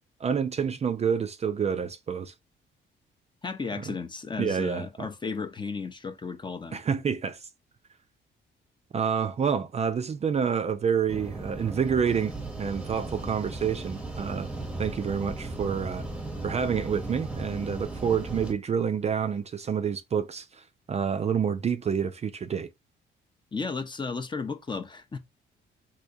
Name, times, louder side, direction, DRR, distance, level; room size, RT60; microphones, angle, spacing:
voice 1, 0.2-2.3 3.9-4.0 4.4-5.1 6.7-7.5 8.9-14.5 14.8-16.0 16.4-22.7, right 7 dB, 35° right, 0.4 m, -28 dB
voice 2, 3.4-6.8 23.5-25.2, left 4 dB, 25° left, 0.5 m, -34 dB
sound 1, 11.1-18.5, right 2 dB, 5° right, 0.8 m, -37 dB
3.4 x 2.7 x 2.6 m
cardioid pair, 90°, 20 cm